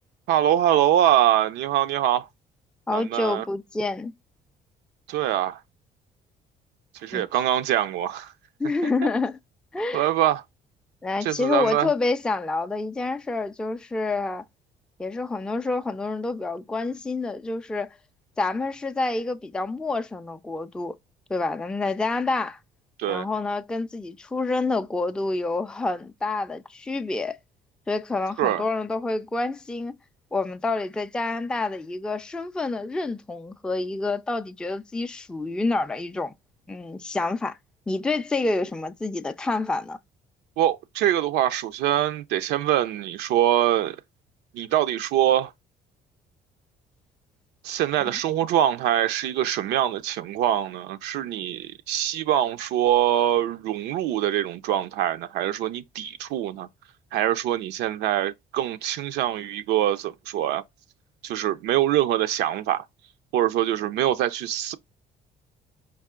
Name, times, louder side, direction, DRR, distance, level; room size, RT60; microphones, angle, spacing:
voice 1, 0.3-2.3 2.9-3.4 5.1-5.6 6.9-8.3 8.8-8.9 9.9-10.4 11.2-11.9 23.0-23.3 28.4-28.6 40.6-44.0 44.5-45.5 47.6-56.7 57.1-60.6 61.2-62.8 63.3-64.8, right 12 dB, 80° right, 0.4 m, -24 dB
voice 2, 2.9-4.1 7.1-7.2 8.6-9.4 9.7-10.1 11.0-14.4 15.0-17.9 18.4-21.0 21.3-22.6 23.1-27.4 27.9-29.9 30.3-36.3 36.7-37.6 37.9-40.0 48.0-48.2, left 3 dB, 5° left, 0.3 m, -28 dB
4.7 x 2.4 x 3.6 m
cardioid pair, 110°, 17 cm